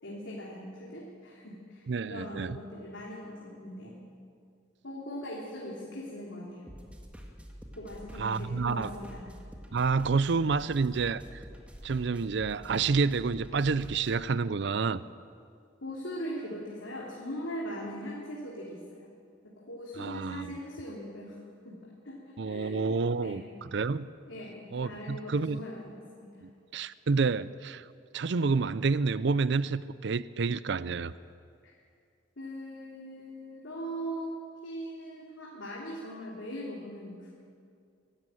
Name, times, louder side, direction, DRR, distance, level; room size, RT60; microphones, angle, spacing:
voice 1, 0.0-4.0 4.8-6.7 7.7-9.3 15.8-19.1 19.4-21.4 21.6-23.5 24.3-26.4 31.6-31.7 32.4-37.3, equal, 75° left, -4 dB, 3.3 m, -40 dB
voice 2, 1.9-2.6 8.2-8.9 9.7-11.4 11.8-15.0 20.0-20.5 22.4-23.4 23.7-24.1 24.7-25.6 26.4-27.9 28.1-31.1, right 4 dB, 65° right, 17 dB, 0.5 m, -29 dB
sound 1, 6.7-14.2, equal, 5° right, 1.8 m, -47 dB
23.5 x 12.5 x 9.0 m, 2.3 s
head